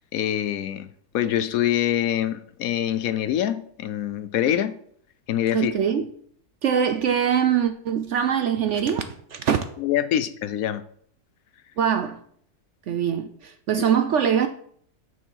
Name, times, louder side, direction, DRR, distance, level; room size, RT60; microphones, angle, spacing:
voice 1, 0.1-0.9 1.1-4.7 5.3-5.7 9.8-10.8, left 11 dB, 70° left, 0.9 m, -24 dB
voice 2, 5.5-6.1 6.6-9.0 9.3-9.7 11.8-12.2 12.9-14.5, right 8 dB, 65° right, 0.7 m, -23 dB
7.0 x 6.3 x 5.7 m
omnidirectional pair, 1.7 m